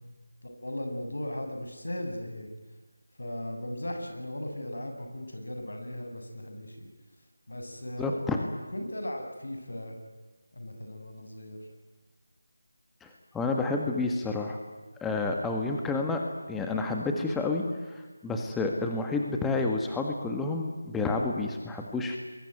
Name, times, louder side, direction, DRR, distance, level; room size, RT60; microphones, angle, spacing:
voice 1, 0.6-2.5 3.2-6.9 7.5-8.1 8.7-10.0 10.5-11.6, left 1 dB, 75° left, 5 dB, 7.3 m, -37 dB
voice 2, 8.0-8.4 13.0-14.6 15.0-22.2, left 3 dB, 5° left, 2 dB, 1.6 m, -30 dB
28.5 x 22.0 x 9.4 m, 1.2 s
figure-of-eight pair, 165°, 0 cm